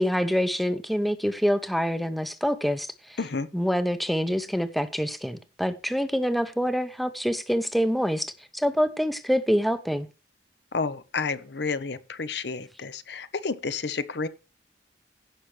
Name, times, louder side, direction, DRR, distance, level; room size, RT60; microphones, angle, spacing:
voice 1, 0.0-2.9 3.5-10.1, equal, ahead, 0.6 m, -26 dB
voice 2, 3.2-3.5 10.7-14.3, left 4 dB, 70° left, 0.8 m, -30 dB
16.5 x 6.0 x 3.3 m
head